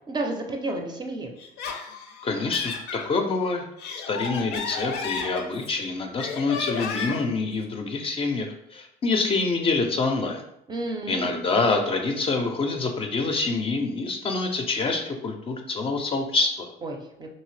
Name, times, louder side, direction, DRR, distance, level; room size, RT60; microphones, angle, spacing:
voice 1, 0.1-1.3 10.7-11.3 16.8-17.3, right 2 dB, 25° right, 2 dB, 0.5 m, -31 dB
Laughter, 1.4-3.1 3.6-5.8 6.2-7.3, left 5 dB, 85° left, 0.5 m, -33 dB
voice 2, 2.2-3.6 4.1-10.4 11.1-16.7, left 3 dB, 35° left, 4 dB, 0.4 m, -26 dB
2.8 x 2.7 x 3.1 m, 0.77 s
cardioid pair, 110°, 17 cm